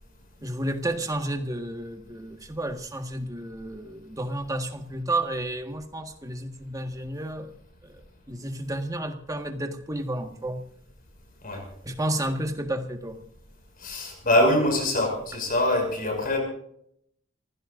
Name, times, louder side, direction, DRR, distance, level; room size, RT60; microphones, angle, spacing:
voice 1, 0.4-7.5 7.8-10.6 11.8-13.2, right 1 dB, 15° right, 1.6 m, -31 dB
voice 2, 13.8-16.4, left 1 dB, 45° left, 6.0 m, -24 dB
28.0 x 16.0 x 2.6 m
head